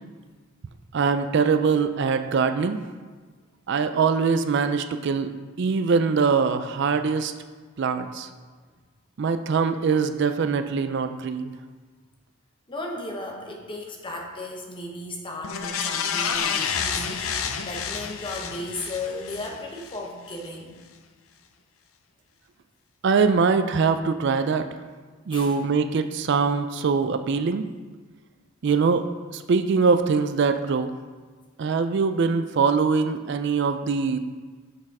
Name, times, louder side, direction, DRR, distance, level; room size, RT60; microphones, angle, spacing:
voice 1, 0.9-2.8 3.7-5.3 5.6-7.3 7.8-8.3 9.2-11.5 23.0-24.7 25.3-27.6 28.6-29.0 29.3-30.9 31.6-34.2, right 5 dB, 55° right, 9 dB, 0.4 m, -23 dB
voice 2, 12.7-20.8 25.3-25.6 28.6-28.8, left 2 dB, 25° left, 1 dB, 1.0 m, -35 dB
sound 1, 15.4-20.0 20.4-20.5, left 6 dB, 85° left, 0.6 m, -29 dB
6.5 x 6.1 x 4.8 m, 1.4 s
head